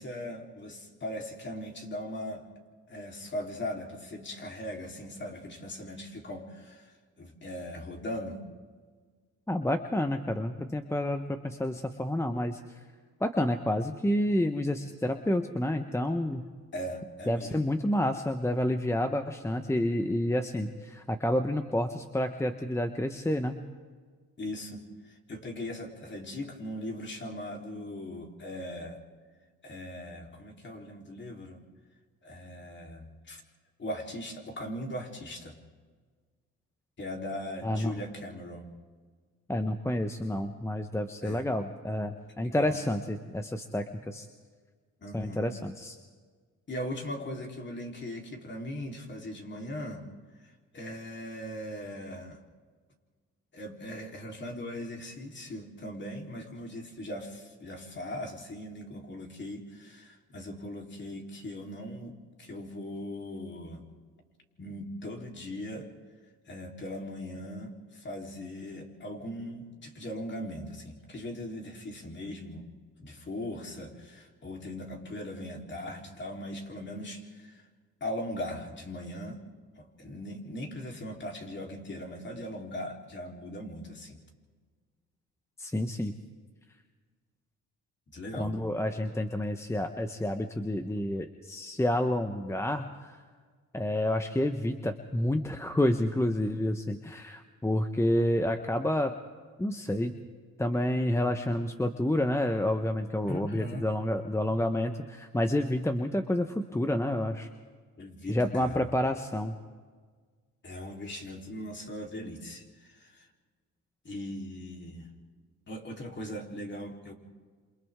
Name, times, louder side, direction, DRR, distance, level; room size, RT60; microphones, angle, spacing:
voice 1, 0.0-2.5 2.9-8.5 16.7-17.6 24.4-29.0 29.6-31.6 32.2-33.4 33.8-35.6 37.0-38.7 41.2-41.5 42.4-42.8 45.0-45.5 46.7-50.1 50.4-52.4 53.5-63.9 64.6-65.9 66.5-72.7 73.0-77.7 78.0-79.4 79.8-84.2 88.1-88.6 103.3-103.9 108.0-108.8 110.6-113.3 114.0-115.1 115.7-117.1, left 1 dB, 40° left, 1 dB, 3.8 m, -39 dB
voice 2, 9.5-12.6 13.2-16.5 17.3-23.6 37.6-37.9 39.5-44.3 45.1-46.0 85.6-86.1 88.4-93.2 93.7-99.1 99.6-100.1 100.6-107.5 108.3-109.5, left 1 dB, 10° left, 7 dB, 1.1 m, -29 dB
28.0 x 27.5 x 3.7 m, 1.5 s
cardioid pair, 90°, 30 cm